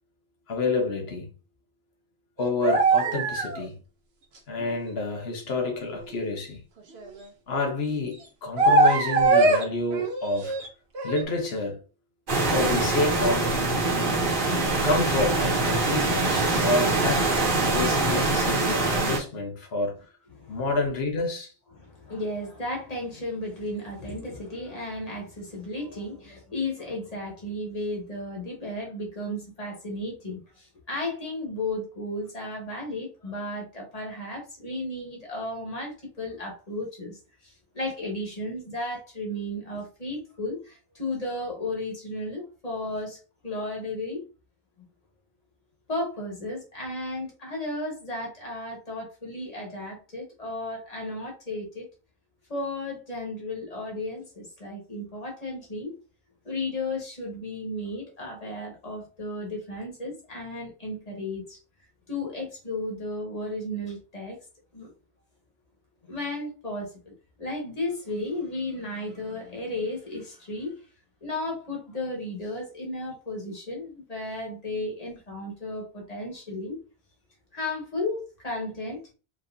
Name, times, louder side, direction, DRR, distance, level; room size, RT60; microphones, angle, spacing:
voice 1, 0.5-1.3 2.4-3.8 4.5-6.6 7.5-10.6 11.0-11.8 12.5-13.6 14.8-17.3 17.7-20.1 20.5-21.5, left 2 dB, 80° left, 1.3 m, -28 dB
sound 1, 2.4-3.6 4.7-4.8 6.9-7.2 8.6-9.6 9.9-10.7 10.9-11.2, right 3 dB, 80° right, 1.1 m, -21 dB
sound 2, 12.3-19.2, right 2 dB, 55° right, 1.2 m, -24 dB
voice 2, 21.7-43.2 43.4-44.2 45.9-51.9 52.5-55.9 56.4-61.6 62.1-64.4 64.7-64.9 66.1-70.7 71.2-76.8 77.5-79.0, left 2 dB, 40° left, 1.5 m, -34 dB
4.5 x 3.1 x 2.7 m
omnidirectional pair, 1.0 m